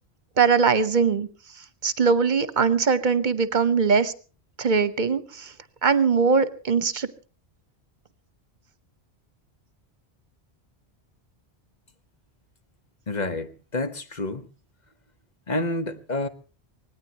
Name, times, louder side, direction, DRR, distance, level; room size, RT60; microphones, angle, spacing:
voice 1, 0.4-1.3 1.8-4.1 4.6-5.5 5.8-7.1, right 5 dB, 45° right, 1.1 m, -21 dB
voice 2, 13.1-14.5 15.5-16.3, left 2 dB, 45° left, 1.3 m, -29 dB
24.5 x 18.5 x 2.9 m
omnidirectional pair, 1.1 m